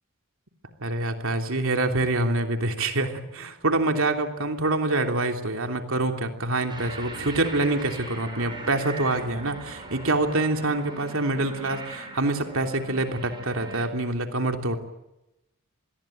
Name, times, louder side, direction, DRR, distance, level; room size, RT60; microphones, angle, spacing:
voice 1, 0.8-14.8, right 2 dB, 65° right, 5 dB, 3.2 m, -26 dB
sound 1, 6.7-13.9, right 2 dB, 20° right, 6.7 m, -40 dB
27.0 x 21.0 x 9.2 m, 0.94 s
head